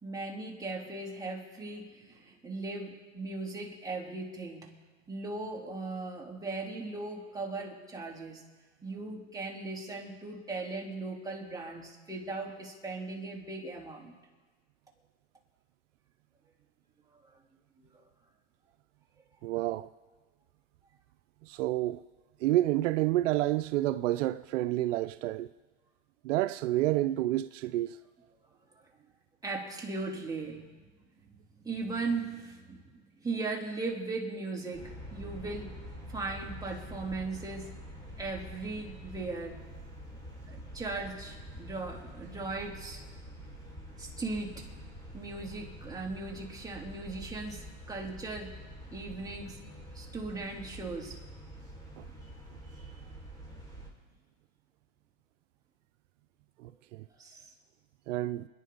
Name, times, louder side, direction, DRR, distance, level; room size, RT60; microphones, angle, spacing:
voice 1, 0.0-4.7 5.1-8.4 8.8-14.1 17.8-18.0 29.4-30.9 31.6-35.7 36.1-37.7 38.2-39.6 40.5-43.0 44.0-44.7 45.1-48.5 48.9-49.6 49.9-51.2 52.8-52.9 57.2-57.5, right 3 dB, 10° right, 3.0 m, -38 dB
voice 2, 19.4-19.9 21.4-22.0 22.4-25.5 26.2-28.0 52.0-52.1 56.6-57.0 58.1-58.5, right 15 dB, 80° right, 0.6 m, -29 dB
sound 1, 34.7-53.9, equal, 10° left, 4.9 m, -46 dB
27.5 x 10.5 x 3.9 m
supercardioid pair, 120°, 37 cm